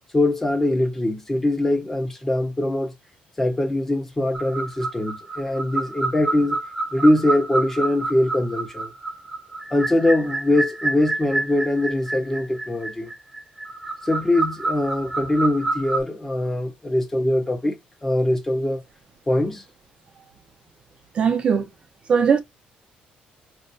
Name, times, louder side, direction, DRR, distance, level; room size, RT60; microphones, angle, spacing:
voice 1, 0.1-2.9 3.4-6.6 6.9-8.9 9.7-13.1 14.0-17.7 18.0-18.8 19.3-19.6, left 1 dB, 15° left, 1.4 m, -22 dB
sound 1, 4.3-16.0, right 2 dB, 15° right, 1.0 m, -28 dB
voice 2, 21.1-21.7 22.1-22.4, right 6 dB, 35° right, 1.1 m, -19 dB
5.1 x 3.3 x 2.8 m
cardioid pair, 165°, 3 cm